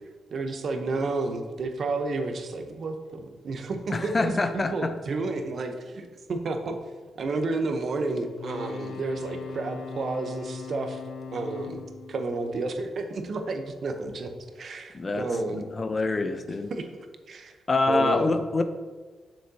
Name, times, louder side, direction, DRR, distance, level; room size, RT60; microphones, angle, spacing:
voice 1, 0.3-6.8 7.2-11.0 11.3-15.6 16.7-16.9 17.3-17.6 17.9-18.4, right 3 dB, 60° right, 6 dB, 0.8 m, -31 dB
voice 2, 3.9-4.9 14.9-15.3 15.7-16.7 17.7-18.6, left 3 dB, 35° left, 9 dB, 0.6 m, -25 dB
sound 1, 8.3-13.4 16.1-16.3, left 5 dB, 90° left, 0.6 m, -40 dB
7.7 x 6.4 x 2.8 m, 1.4 s
supercardioid pair, 60°, 0 cm